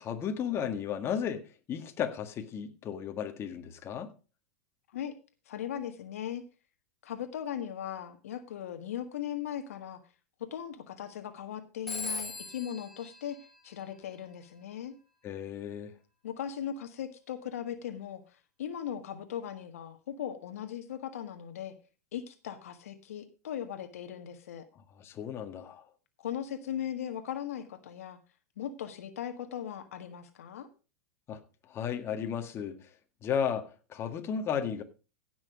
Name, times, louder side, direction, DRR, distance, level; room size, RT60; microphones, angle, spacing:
voice 1, 0.0-4.1 15.2-15.9 25.0-25.9 31.3-31.4 31.7-32.9 33.2-34.8, left 8 dB, 30° left, 1.8 m, -34 dB
voice 2, 5.5-6.4 7.0-10.0 10.5-13.4 13.6-14.9 16.2-21.7 22.1-24.6 26.2-28.2 28.6-30.7, left 9 dB, 70° left, 1.6 m, -38 dB
Telephone, 11.9-14.4, left 3 dB, ahead, 3.7 m, -40 dB
16.5 x 6.2 x 4.9 m
hypercardioid pair, 105°, 8 cm